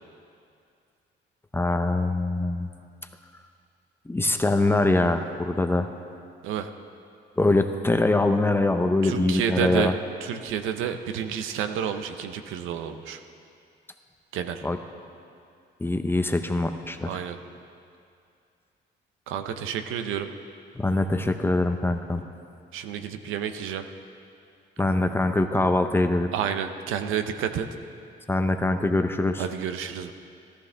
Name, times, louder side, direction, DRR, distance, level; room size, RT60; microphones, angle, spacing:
voice 1, 1.5-2.7 4.1-5.9 7.4-9.9 14.6-14.8 15.8-17.1 20.8-22.2 24.8-26.3 28.3-29.4, left 2 dB, 10° left, 7 dB, 0.7 m, -23 dB
voice 2, 9.0-9.9 10.2-13.2 14.3-14.7 17.1-17.4 19.3-20.3 22.7-23.9 26.3-27.7 29.4-30.1, right 8 dB, 90° right, 8 dB, 0.7 m, -30 dB
14.0 x 13.5 x 3.4 m, 2.4 s
cardioid pair, 90°, 20 cm